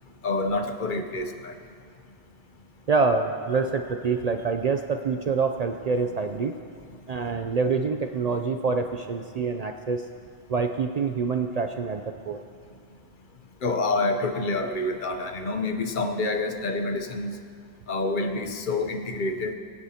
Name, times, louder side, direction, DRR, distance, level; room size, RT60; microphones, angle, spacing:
voice 1, 0.2-1.5 13.6-17.4 17.9-19.5, left 2 dB, 50° left, 5 dB, 0.9 m, -27 dB
voice 2, 2.9-6.5 7.1-10.1 10.5-12.4, right 4 dB, 65° right, 5 dB, 0.4 m, -26 dB
22.0 x 9.6 x 2.8 m, 2.3 s
omnidirectional pair, 1.2 m